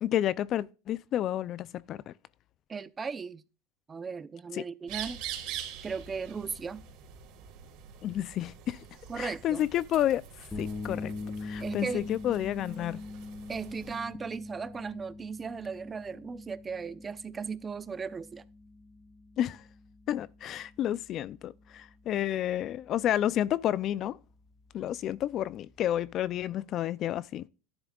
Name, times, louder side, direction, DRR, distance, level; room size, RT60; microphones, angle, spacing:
voice 1, 0.0-2.1 4.5-4.6 8.0-8.8 9.2-10.2 10.6-11.1 11.4-13.0 19.4-19.6 20.1-24.2 24.7-27.5, left 11 dB, 40° left, 0.4 m, -30 dB
voice 2, 2.7-3.4 3.9-5.2 5.8-6.8 9.1-9.7 11.6-12.1 13.5-18.4, right 5 dB, 20° right, 0.6 m, -37 dB
sound 1, 4.9-14.0, right 9 dB, 55° right, 3.7 m, -44 dB
sound 2, 10.5-26.4, left 3 dB, 10° left, 1.5 m, -44 dB
12.5 x 10.5 x 2.3 m
supercardioid pair, 130°, 0 cm